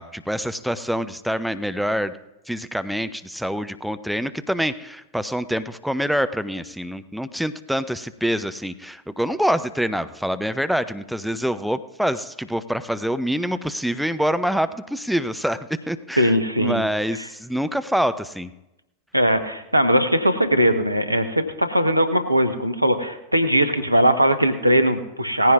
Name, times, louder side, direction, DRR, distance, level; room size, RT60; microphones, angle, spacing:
voice 1, 0.0-2.2 2.5-15.6 15.9-18.5, equal, ahead, 12 dB, 0.5 m, -26 dB
voice 2, 16.2-16.8 17.2-17.3 19.1-25.5, equal, 85° right, 8 dB, 0.9 m, -20 dB
19.0 x 15.0 x 2.4 m, 0.96 s
figure-of-eight pair, 90°, 0 cm